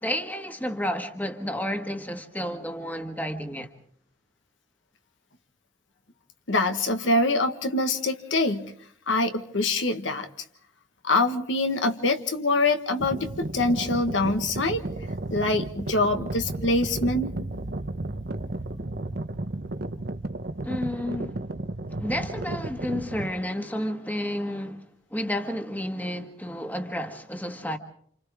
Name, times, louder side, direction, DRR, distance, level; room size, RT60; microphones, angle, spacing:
voice 1, 0.0-3.7 20.6-21.4 22.0-27.8, left 1 dB, 10° left, 1.6 m, -31 dB
voice 2, 6.5-8.7 9.1-10.3 11.0-14.9 15.3-17.3, left 2 dB, 80° left, 1.5 m, -24 dB
sound 1, 13.0-23.3, right 2 dB, 55° right, 0.9 m, -33 dB
29.5 x 27.5 x 3.6 m
head